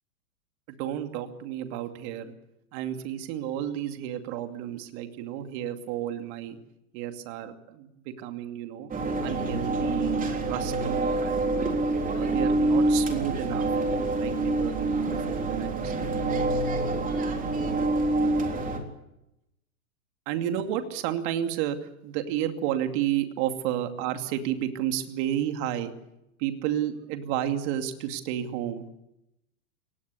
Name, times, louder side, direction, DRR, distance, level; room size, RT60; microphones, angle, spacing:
voice 1, 0.7-2.3 2.7-6.6 6.9-8.9 9.2-11.7 12.1-13.7 14.1-16.1 20.3-21.8 22.0-25.9 26.4-28.8, right 11 dB, 45° right, 7 dB, 2.6 m, -31 dB
sound 1, 8.9-18.8, right 2 dB, 20° right, 3.6 m, -26 dB
23.0 x 19.0 x 8.3 m, 0.86 s
hypercardioid pair, 130°, 43 cm